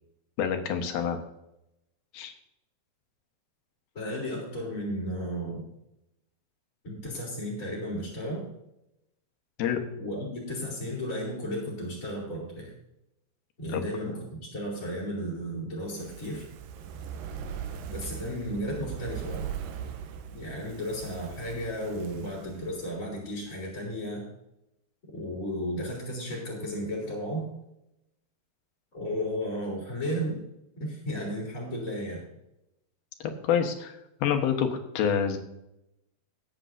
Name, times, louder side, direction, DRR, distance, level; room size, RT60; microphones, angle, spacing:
voice 1, 0.4-1.2 2.1-2.3 9.6-9.8 13.7-13.8 14.1-14.2 33.2-35.4, left 8 dB, 70° left, 5 dB, 2.9 m, -27 dB
voice 2, 3.9-5.6 6.8-8.4 10.0-12.7 13.6-16.4 17.9-19.4 20.3-24.2 25.1-27.5 28.9-30.4 30.8-32.2, equal, 20° left, -5 dB, 3.5 m, -34 dB
Fire, 15.8-23.2 23.5-23.6, right 8 dB, 70° right, 2.3 m, -40 dB
20.5 x 9.1 x 2.7 m, 0.86 s
omnidirectional pair, 4.8 m